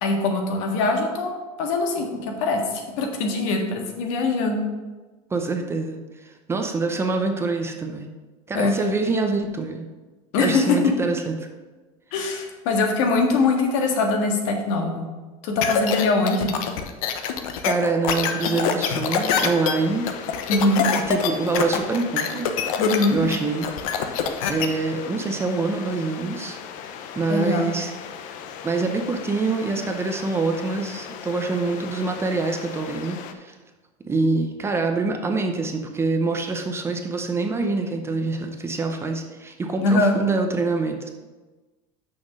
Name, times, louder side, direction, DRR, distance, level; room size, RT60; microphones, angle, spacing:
voice 1, 0.0-1.3 1.6-4.6 8.5-8.7 10.3-10.8 12.1-15.0 15.4-16.5 20.5-20.8 22.8-23.2 27.3-27.6 39.8-40.1, left 3 dB, 65° left, 3 dB, 1.7 m, -22 dB
voice 2, 5.3-8.1 8.5-9.9 10.4-11.5 17.6-20.1 21.1-22.5 23.1-23.7 24.4-26.6 27.1-27.9 28.6-33.5 34.1-41.1, right 3 dB, 15° right, 4 dB, 0.6 m, -25 dB
sound 1, 15.6-24.7, left 7 dB, 85° left, 0.9 m, -24 dB
sound 2, 19.0-33.3, left 8 dB, 50° left, 0.7 m, -38 dB
6.4 x 5.9 x 6.2 m, 1.2 s
supercardioid pair, 150°, 18 cm